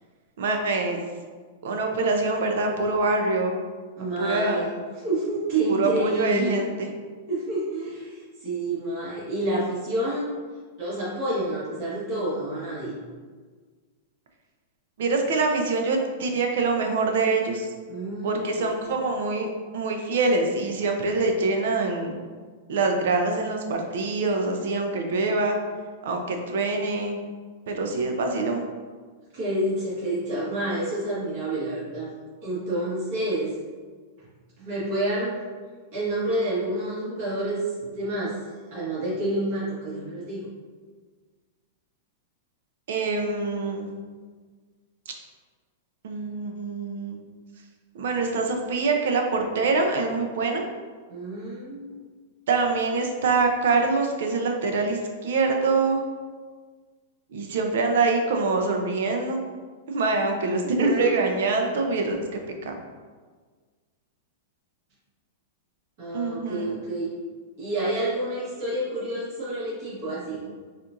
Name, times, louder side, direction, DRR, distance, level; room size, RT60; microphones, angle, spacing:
voice 1, 0.4-1.0 1.6-3.6 4.2-4.6 5.7-6.9 15.0-17.7 18.2-22.2 22.7-25.6 26.0-27.2 27.7-28.7 42.9-43.9 45.1-45.2 46.0-47.2 47.9-50.7 52.5-56.0 57.3-59.4 59.9-62.7 66.1-66.8, right 3 dB, 70° right, 3 dB, 0.6 m, -25 dB
voice 2, 4.0-4.8 5.0-6.6 7.3-10.3 10.8-13.0 17.9-18.7 29.3-32.1 32.4-33.5 34.6-35.4 35.9-38.4 38.7-40.5 51.1-51.9 60.6-61.1 66.0-67.2 67.6-70.5, right 1 dB, 50° right, -9 dB, 1.4 m, -28 dB
4.2 x 2.5 x 2.6 m, 1.5 s
hypercardioid pair, 140°, 0 cm